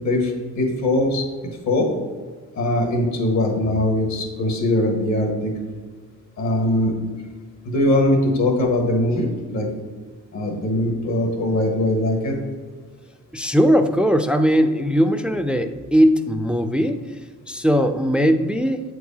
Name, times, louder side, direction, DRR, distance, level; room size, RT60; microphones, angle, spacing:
voice 1, 0.0-1.2 1.6-1.9 2.6-5.5 6.4-6.9 7.6-9.3 9.5-9.7 10.3-12.4, left 1 dB, 65° left, 1 dB, 1.4 m, -21 dB
voice 2, 13.3-17.0 17.5-18.8, equal, 5° right, 7 dB, 0.3 m, -19 dB
8.1 x 4.7 x 2.8 m, 1.5 s
cardioid pair, 90°, 30 cm